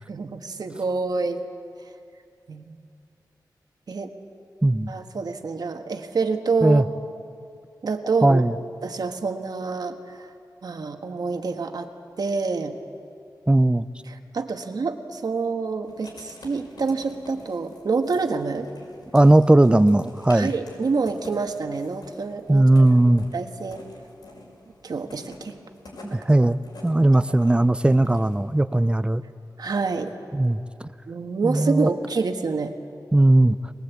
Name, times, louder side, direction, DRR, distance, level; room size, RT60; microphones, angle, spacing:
voice 1, 0.1-1.4 2.5-2.8 3.9-4.1 4.9-6.8 7.8-8.4 8.8-10.2 10.6-11.9 12.2-12.8 14.1-18.7 20.3-22.7 23.3-23.8 24.8-25.6 26.1-26.3 29.6-30.1 31.1-32.7, right 4 dB, 65° right, 6 dB, 1.5 m, -27 dB
voice 2, 8.2-8.5 13.5-13.9 19.1-20.5 22.5-23.3 26.0-29.2 30.3-30.6 31.4-31.9 33.1-33.6, right 1 dB, 15° right, 15 dB, 0.5 m, -18 dB
Writing, 15.8-28.4, left 2 dB, 70° left, 5.5 m, -47 dB
22.0 x 20.5 x 8.4 m, 2.5 s
wide cardioid pair, 120°, 7 cm